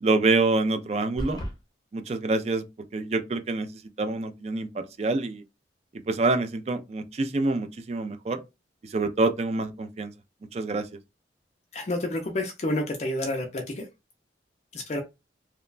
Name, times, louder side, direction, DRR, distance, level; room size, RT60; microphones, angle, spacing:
voice 1, 0.0-1.4 1.9-2.6 2.9-3.7 4.0-5.4 6.1-8.4 8.8-10.1 10.5-10.9, right 3 dB, 35° right, 0.3 m, -26 dB
sound 1, 1.2-1.6, equal, 20° left, 0.8 m, -33 dB
voice 2, 11.7-13.9 14.7-15.0, left 1 dB, 40° left, 0.4 m, -29 dB
2.9 x 2.1 x 2.3 m
head